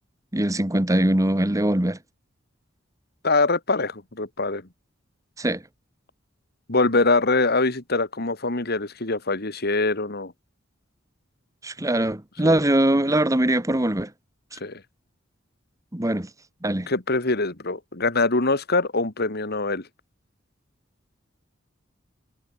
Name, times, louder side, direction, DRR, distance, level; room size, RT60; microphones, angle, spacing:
voice 1, 0.3-2.0 5.4-5.6 11.6-14.1 15.9-16.3 16.6-16.9, right 1 dB, 15° right, 1.4 m, -22 dB
voice 2, 3.2-4.7 6.7-10.3 12.4-12.6 14.6-14.8 16.9-19.8, left 3 dB, 55° left, 2.6 m, -23 dB
head